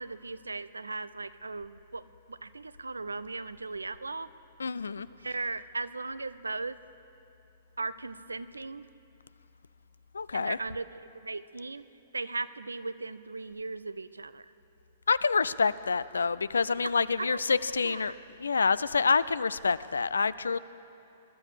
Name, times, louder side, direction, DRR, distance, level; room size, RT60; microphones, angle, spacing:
voice 1, 0.0-4.3 5.2-6.8 7.8-8.9 10.3-11.8 12.1-14.4 16.8-16.9 17.2-18.2, right 3 dB, 85° right, 16 dB, 0.4 m, -37 dB
voice 2, 4.6-5.1 10.1-10.6 15.1-18.1 18.4-20.6, left 5 dB, 80° left, 18 dB, 0.4 m, -27 dB
21.0 x 12.0 x 5.0 m, 2.8 s
figure-of-eight pair, 115°, 0 cm